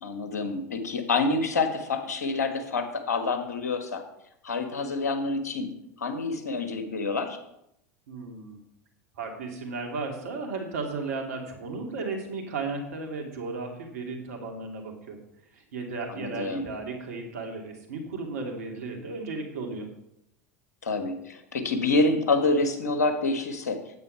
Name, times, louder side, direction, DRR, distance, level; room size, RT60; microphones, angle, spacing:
voice 1, 0.0-4.0 4.4-5.7 6.0-7.4 16.1-16.7 20.8-23.8, left 3 dB, 80° left, 7 dB, 1.5 m, -27 dB
voice 2, 8.1-8.6 9.2-15.2 15.5-19.9, right 3 dB, 70° right, 2 dB, 2.5 m, -35 dB
9.4 x 8.3 x 5.6 m, 0.79 s
hypercardioid pair, 85°, 9 cm